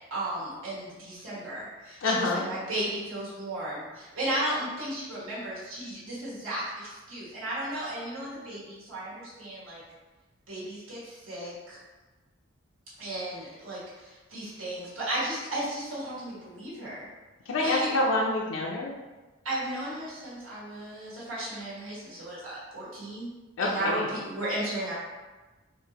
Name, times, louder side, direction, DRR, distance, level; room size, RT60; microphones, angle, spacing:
voice 1, 0.1-9.8 10.5-11.8 13.0-17.1 17.6-17.9 19.4-23.3 23.6-24.9, right 1 dB, 85° right, -8 dB, 1.4 m, -34 dB
voice 2, 2.0-2.5 17.5-18.9 23.6-24.1, left 2 dB, 75° left, -1 dB, 0.4 m, -27 dB
3.7 x 2.6 x 2.9 m, 1.2 s
head